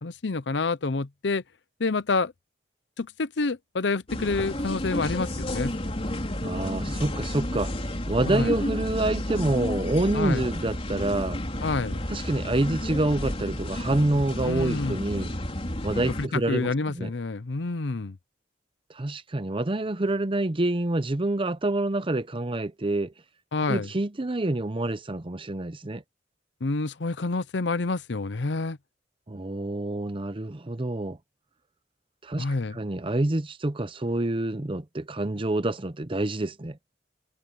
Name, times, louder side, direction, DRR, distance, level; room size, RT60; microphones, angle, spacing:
voice 1, 0.0-1.4 1.8-2.3 3.0-5.7 8.3-8.6 10.1-10.4 11.6-12.0 14.4-15.0 16.2-18.2 23.5-23.9 26.6-28.8 32.4-32.8, left 3 dB, 70° left, 0.7 m, -28 dB
sound 1, 4.1-16.3, left 1 dB, 35° left, 3.8 m, -31 dB
voice 2, 6.4-11.4 12.1-15.3 15.8-17.1 18.9-23.1 23.7-26.0 29.3-31.2 32.2-32.5 32.7-36.8, right 2 dB, 30° right, 0.8 m, -27 dB
head